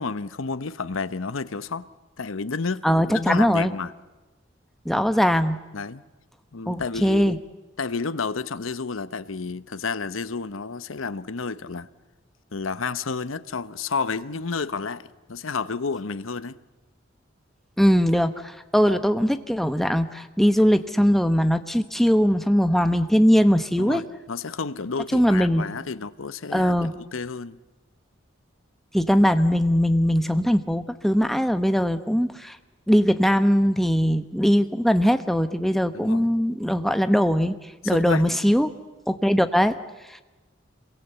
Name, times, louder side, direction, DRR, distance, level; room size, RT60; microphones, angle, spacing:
voice 1, 0.0-1.9 2.2-2.8 3.1-3.9 5.7-6.0 6.5-7.4 7.8-11.9 12.5-16.6 18.9-19.0 23.8-26.7 27.1-27.6 35.9-36.3 37.8-38.3, left 4 dB, 90° left, 0.9 m, -30 dB
voice 2, 2.8-3.7 4.8-5.6 6.7-7.4 17.8-18.3 18.7-24.0 25.1-25.6 26.5-26.9 28.9-32.6 32.9-37.5 37.8-38.7 39.1-39.8, equal, ahead, 1.0 m, -20 dB
26.5 x 22.5 x 8.1 m
head